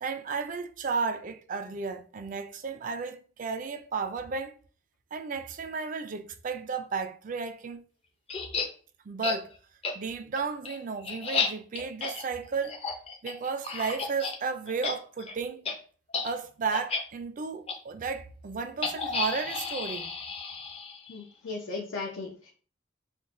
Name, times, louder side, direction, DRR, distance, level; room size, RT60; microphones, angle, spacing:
voice 1, 0.0-4.5 5.1-7.8 9.1-9.5 9.9-12.8 13.2-15.7 16.2-20.1, right 5 dB, 40° right, 0.4 m, -33 dB
sound 1, 8.3-8.7 9.2-9.4 9.8-9.9 10.4-14.4 14.7-14.9 15.2-15.3 15.6-15.7 16.1-16.3 16.7-17.0 17.7-17.8 18.8-21.2, left 5 dB, 30° left, 0.5 m, -32 dB
voice 2, 21.1-22.5, left 3 dB, 75° left, 0.6 m, -37 dB
5.8 x 2.1 x 2.5 m
head